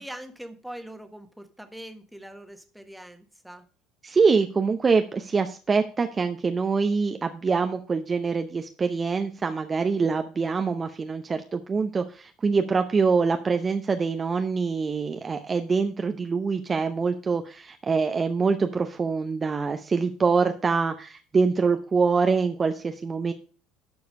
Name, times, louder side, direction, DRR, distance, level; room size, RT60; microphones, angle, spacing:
voice 1, 0.0-3.6, right 1 dB, ahead, 7 dB, 1.4 m, -42 dB
voice 2, 4.0-23.3, right 4 dB, 30° right, 7 dB, 0.7 m, -24 dB
11.5 x 4.8 x 5.3 m, 0.39 s
figure-of-eight pair, 65°, 0 cm